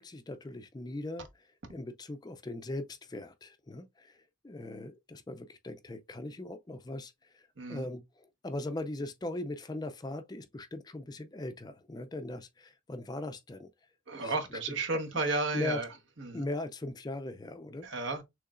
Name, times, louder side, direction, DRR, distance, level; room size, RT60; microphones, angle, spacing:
voice 1, 0.0-4.2 4.4-13.7 14.2-15.0 15.5-15.8 16.3-17.9, left 2 dB, 20° left, 0.4 m, -40 dB
voice 2, 14.1-15.8 16.3-16.5 17.8-18.2, right 3 dB, 70° right, 1.2 m, -32 dB
6.6 x 3.1 x 2.4 m
head